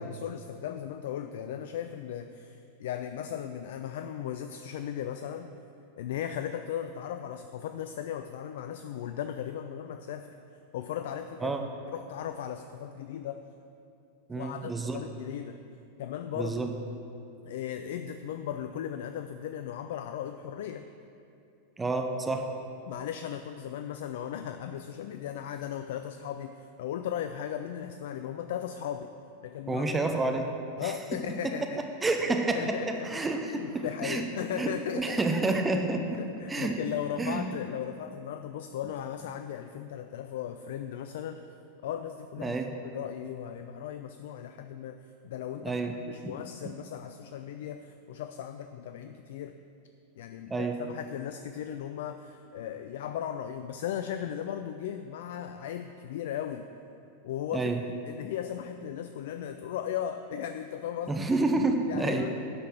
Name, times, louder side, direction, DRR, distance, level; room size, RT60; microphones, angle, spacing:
voice 1, 0.0-5.5 6.0-10.3 10.7-11.5 11.9-13.5 14.4-15.6 16.0-16.6 17.4-20.9 22.9-29.1 29.4-29.8 30.8-31.8 32.5-33.1 33.5-35.2 36.1-41.4 41.8-42.6 42.9-45.8 46.1-49.5 50.2-56.7 57.2-57.7 58.1-61.2 61.9-62.3, left 9 dB, 55° left, 8 dB, 0.3 m, -37 dB
voice 2, 14.3-15.0 16.3-16.7 21.8-22.5 29.7-30.5 30.8-31.0 31.4-31.5 32.0-32.8 33.0-34.2 34.5-36.7 37.2-37.5 42.4-42.7 45.6-46.4 50.5-50.8 57.5-57.8 61.1-62.3, right 2 dB, 10° right, 4 dB, 0.6 m, -29 dB
9.8 x 5.6 x 6.2 m, 2.6 s
figure-of-eight pair, 90°, 0 cm